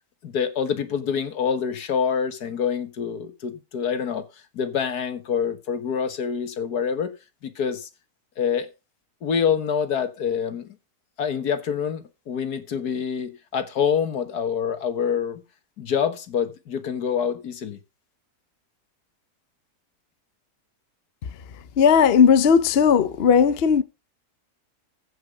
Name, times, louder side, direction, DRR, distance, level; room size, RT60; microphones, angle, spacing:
voice 1, 0.2-4.2 4.5-7.1 7.4-7.9 8.4-8.7 9.2-10.7 11.2-15.4 15.8-17.8, left 7 dB, 75° left, 1.9 m, -26 dB
voice 2, 21.8-23.8, left 7 dB, 50° left, 0.8 m, -16 dB
15.0 x 5.6 x 5.0 m
omnidirectional pair, 1.7 m